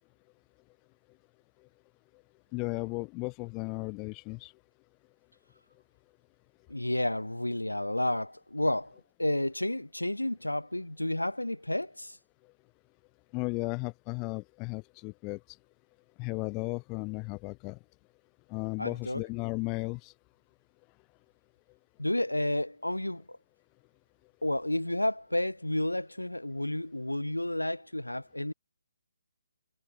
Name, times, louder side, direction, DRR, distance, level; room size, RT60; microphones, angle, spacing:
voice 1, 2.5-4.5 13.3-15.4 16.2-17.8 18.5-20.1, left 29 dB, 20° left, 5.7 m, -35 dB
voice 2, 6.7-12.2 18.8-19.2 22.0-23.4 24.4-28.5, left 1 dB, 80° left, 1.9 m, -31 dB
figure-of-eight pair, 140°, 0 cm